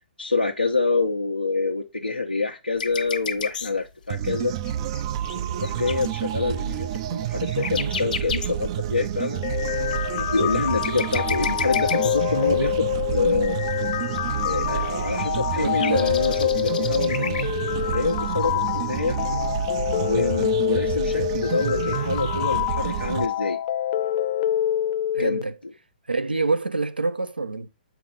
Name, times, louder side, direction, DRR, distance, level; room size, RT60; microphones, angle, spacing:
voice 1, 0.2-4.5 5.3-9.4 10.1-13.6 14.4-17.5 17.9-19.2 19.9-23.6 25.2-25.4, left 3 dB, 90° left, 1.0 m, -26 dB
sound 1, 2.8-3.8 4.3-6.1 6.6-6.7 6.9-7.0 7.2-8.9 9.7-12.4 13.1-13.2 13.7-13.8 14.0-14.6 15.0-15.4 15.6-17.5 17.8-17.9 18.1-18.2 18.4-18.5 18.7-18.8, left 6 dB, 55° left, 1.2 m, -32 dB
sound 2, 4.1-23.3, right 11 dB, 35° right, 0.4 m, -29 dB
sound 3, 9.4-25.4, left 12 dB, 35° left, 0.4 m, -26 dB
voice 2, 15.6-16.2 19.2-19.5 21.2-21.3 25.1-25.5 26.1-27.7, right 3 dB, 80° right, 0.7 m, -27 dB
7.5 x 4.7 x 3.9 m
figure-of-eight pair, 125°, 5 cm